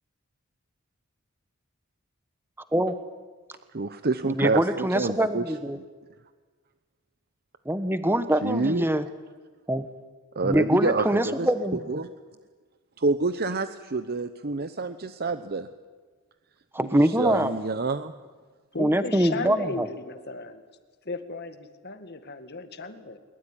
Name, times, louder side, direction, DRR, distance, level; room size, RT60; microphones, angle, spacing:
voice 1, 3.7-5.4 5.7-5.9 8.4-8.9 10.4-11.5 11.9-12.1 13.0-15.7 16.9-18.1, right 3 dB, 45° right, 10 dB, 0.8 m, -27 dB
voice 2, 4.2-5.8 7.6-9.0 9.7-9.9 10.4-11.8 16.7-17.6 18.8-19.9, right 1 dB, 10° right, 11 dB, 1.1 m, -24 dB
voice 3, 18.7-20.6 21.1-23.2, left 3 dB, 50° left, 9 dB, 1.9 m, -36 dB
22.5 x 22.0 x 9.9 m, 1.4 s
head